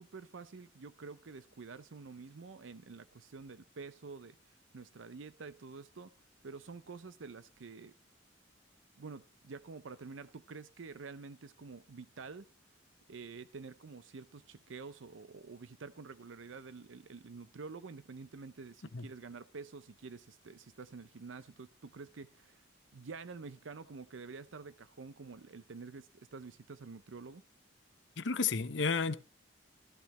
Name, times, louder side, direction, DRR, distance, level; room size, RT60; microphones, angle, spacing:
voice 1, 0.0-6.1 6.4-7.9 9.0-12.5 13.1-22.6 22.9-27.4, right 4 dB, 80° right, 0.6 m, -48 dB
voice 2, 28.2-29.1, left 5 dB, 70° left, 0.9 m, -31 dB
13.5 x 13.5 x 3.2 m
head